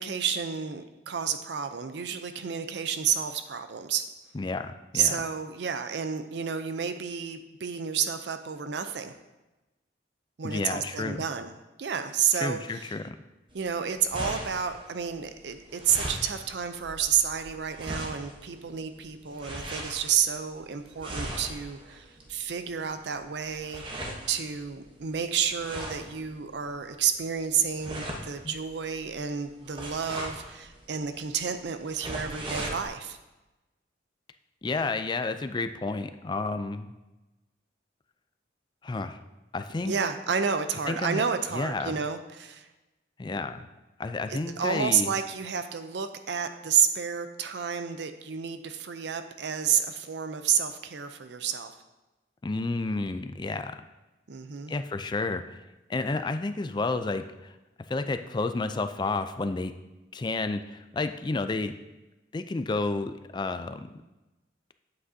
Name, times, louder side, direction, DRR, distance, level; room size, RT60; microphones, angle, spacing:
voice 1, 0.0-4.1 4.9-9.1 10.4-11.5 11.8-12.9 13.5-33.2 39.8-42.7 44.3-51.7 54.3-54.7, right 7 dB, 65° right, 9 dB, 0.5 m, -30 dB
voice 2, 4.3-5.2 10.4-11.2 12.3-13.2 28.4-28.5 34.6-36.9 38.8-39.2 39.5-39.9 40.9-41.2 41.5-42.0 43.2-43.7 44.0-45.1 52.4-53.8 54.7-55.6 55.9-57.5 57.9-59.7 60.1-61.7 62.3-63.9, left 3 dB, 25° left, 9 dB, 0.3 m, -31 dB
sound 1, 13.5-32.9, right 1 dB, 25° right, 0.9 m, -40 dB
8.6 x 7.6 x 2.7 m, 1.1 s
head